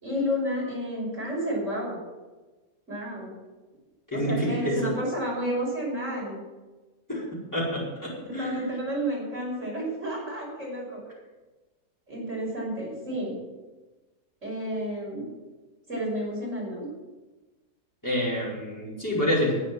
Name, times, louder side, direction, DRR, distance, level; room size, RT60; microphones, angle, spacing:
voice 1, 0.0-2.0 2.9-3.3 4.1-6.4 8.2-11.0 12.1-13.3 14.4-15.3 15.9-16.9 19.4-19.5, equal, 50° right, -4 dB, 6.1 m, -31 dB
voice 2, 4.1-4.9 7.1-7.2 7.5-8.7 18.0-19.6, equal, 10° left, -7 dB, 4.8 m, -27 dB
11.0 x 9.1 x 7.5 m, 1.2 s
omnidirectional pair, 1.7 m